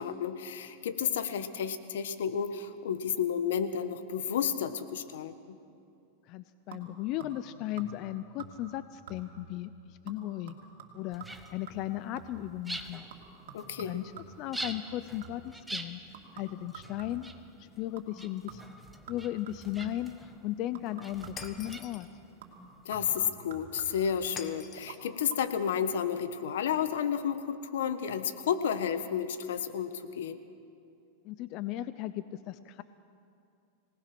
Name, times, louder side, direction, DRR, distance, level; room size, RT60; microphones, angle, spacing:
voice 1, 0.0-5.6 13.5-14.0 22.8-30.4, left 8 dB, 85° left, 11 dB, 1.3 m, -31 dB
voice 2, 6.3-10.5 10.9-13.0 13.8-14.1 14.4-16.0 16.3-17.3 17.6-18.6 19.1-22.1 31.2-32.8, left 14 dB, 45° left, 14 dB, 0.6 m, -36 dB
sound 1, 6.7-7.5 7.8-8.1 8.4-8.8 9.1-9.5 10.1-12.5 13.1-15.6 16.1-17.4 18.0-18.2 18.5-20.1 20.8-21.8 22.4-24.2 24.8-25.0 25.3-25.4, right 7 dB, 75° right, 2.7 m, -49 dB
sound 2, 11.1-22.9, right 1 dB, 5° right, 1.2 m, -46 dB
Shatter, 21.4-22.1 24.4-25.1, left 7 dB, 30° left, 1.2 m, -45 dB
25.0 x 19.0 x 6.1 m, 2.6 s
supercardioid pair, 135°, 0 cm